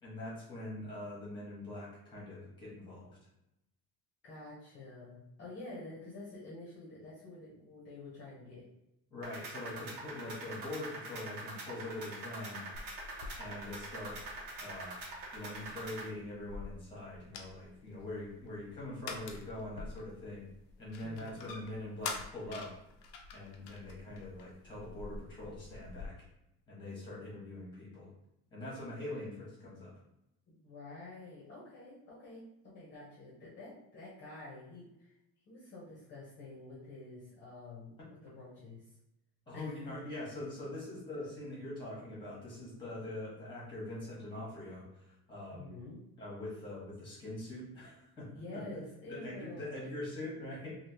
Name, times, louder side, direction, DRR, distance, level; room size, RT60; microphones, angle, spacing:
voice 1, 0.0-3.2 9.1-12.6 13.4-14.2 14.6-15.0 15.3-20.4 20.8-22.8 23.3-26.1 26.7-28.1 28.5-29.9 39.5-45.7 46.2-48.6 49.1-50.8, left 1 dB, 15° left, -6 dB, 1.3 m, -43 dB
voice 2, 4.2-8.6 21.0-21.5 30.5-35.1 35.5-38.9 39.5-39.8 45.5-46.0 48.3-50.0, left 2 dB, 35° left, -7 dB, 0.9 m, -48 dB
sound 1, 9.2-16.1, right 2 dB, 75° right, 1.2 m, -45 dB
sound 2, 12.7-26.1, left 4 dB, 80° left, 0.6 m, -48 dB
3.3 x 2.7 x 2.8 m, 0.85 s
cardioid pair, 175°, 33 cm